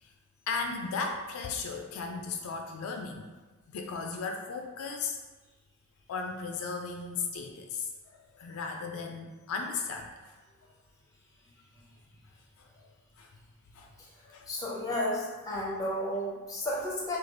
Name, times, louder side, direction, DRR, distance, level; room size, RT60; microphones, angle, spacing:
voice 1, 0.5-3.3 3.7-5.2 6.1-10.3 12.6-12.7 13.2-13.3 13.7-13.9 14.3-14.5, left 4 dB, 75° left, 4 dB, 0.3 m, -36 dB
voice 2, 14.5-17.2, left 1 dB, 15° left, -4 dB, 0.7 m, -32 dB
3.2 x 2.3 x 3.8 m, 1.3 s
head